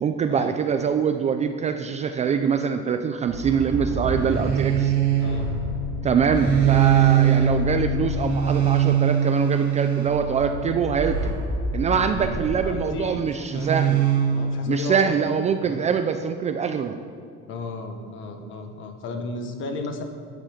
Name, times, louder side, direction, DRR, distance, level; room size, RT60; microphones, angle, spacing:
voice 1, 0.0-4.9 6.0-11.3 11.7-14.0 14.7-17.0, right 6 dB, 25° right, 7 dB, 0.3 m, -24 dB
sound 1, 3.3-12.8 13.5-14.6, right 7 dB, 85° right, 3.8 m, -23 dB
voice 2, 11.9-13.9 14.3-15.9 17.5-20.0, left 3 dB, 40° left, 6 dB, 1.3 m, -35 dB
13.5 x 10.0 x 5.0 m, 2.3 s
cardioid pair, 175°, 29 cm